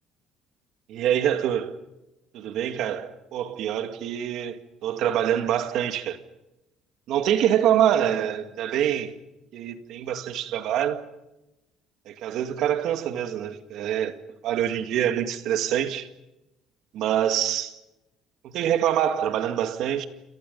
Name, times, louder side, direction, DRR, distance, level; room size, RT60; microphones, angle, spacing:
voice 1, 0.9-1.8 2.3-6.2 7.1-9.1 9.5-11.0 12.1-14.1 14.4-16.1 16.9-17.7 18.4-20.1, right 10 dB, 60° right, 2.0 m, -25 dB
28.5 x 28.0 x 5.5 m
cardioid pair, 170°, 0 cm